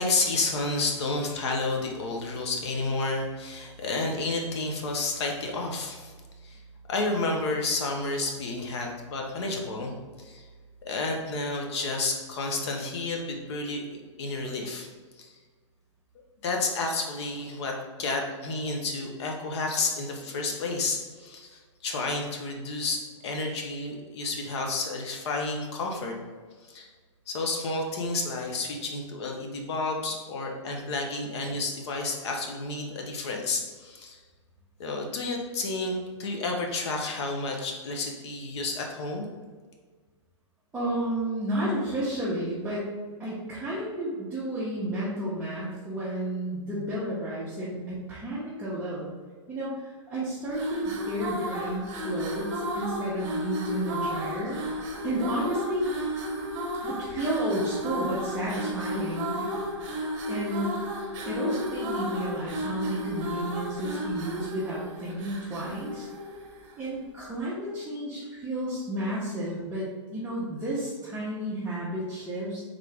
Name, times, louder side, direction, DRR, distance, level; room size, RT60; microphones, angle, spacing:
voice 1, 0.0-6.1 6.4-6.6 6.9-10.5 10.8-14.9 15.2-15.3 16.4-26.2 26.6-26.9 27.3-34.2 34.8-39.3, left 3 dB, 60° left, 1 dB, 0.9 m, -31 dB
voice 2, 40.7-42.9 43.2-49.1 49.5-54.6 55.0-55.9 56.8-59.5 60.3-60.8 61.3-66.1 66.8-72.6, right 1 dB, 10° right, -9 dB, 0.8 m, -32 dB
sound 1, 50.4-66.9, equal, 35° right, 1.1 m, -33 dB
3.7 x 3.5 x 3.3 m, 1.5 s
hypercardioid pair, 140°, 16 cm